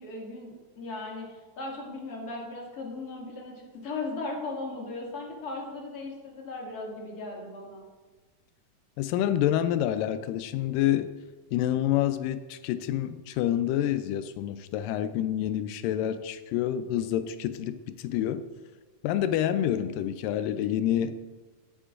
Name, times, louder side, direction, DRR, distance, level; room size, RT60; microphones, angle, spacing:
voice 1, 0.0-7.8, left 3 dB, 30° left, -2 dB, 2.2 m, -37 dB
voice 2, 9.0-11.1 11.5-18.5 19.0-21.2, left 11 dB, 90° left, 11 dB, 2.2 m, -28 dB
19.0 x 8.8 x 2.5 m, 1.3 s
omnidirectional pair, 3.8 m